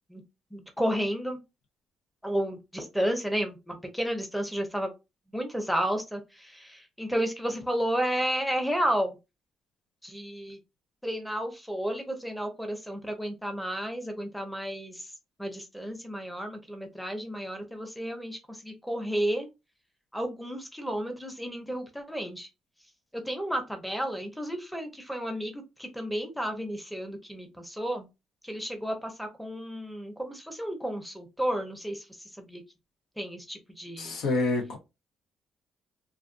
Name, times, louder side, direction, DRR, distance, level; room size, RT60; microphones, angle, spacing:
voice 1, 0.5-1.4 2.2-4.9 5.3-9.2 10.0-10.6 11.0-15.1 15.4-19.5 20.1-22.5 23.3-28.1 28.4-32.0 32.4-32.6 33.2-34.2, equal, ahead, 0.7 m, -32 dB
voice 2, 34.0-34.8, left 3 dB, 80° left, 0.8 m, -27 dB
2.5 x 2.4 x 2.5 m
cardioid pair, 75°, 0 cm